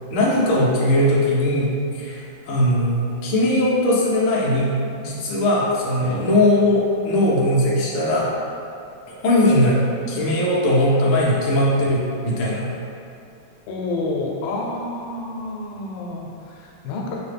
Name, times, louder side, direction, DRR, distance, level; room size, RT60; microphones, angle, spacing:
voice 1, 0.1-2.2 2.5-8.3 9.1-9.8 10.1-12.7, left 1 dB, 55° left, -6 dB, 0.9 m, -19 dB
voice 2, 13.7-17.2, left 2 dB, 85° left, -1 dB, 1.5 m, -29 dB
5.6 x 2.2 x 3.4 m, 2.6 s
omnidirectional pair, 2.2 m